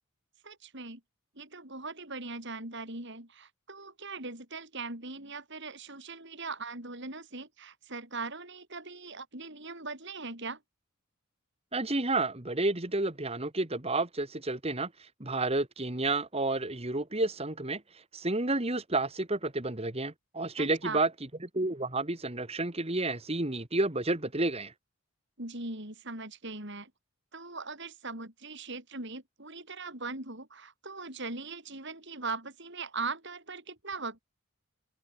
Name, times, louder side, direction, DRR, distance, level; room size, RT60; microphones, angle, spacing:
voice 1, 0.4-1.0 1.4-10.6 20.6-21.0 25.4-26.9 27.3-34.2, right 3 dB, 55° right, 7.6 m, -40 dB
voice 2, 11.7-21.1 21.5-24.7, right 2 dB, 30° right, 1.9 m, -30 dB
head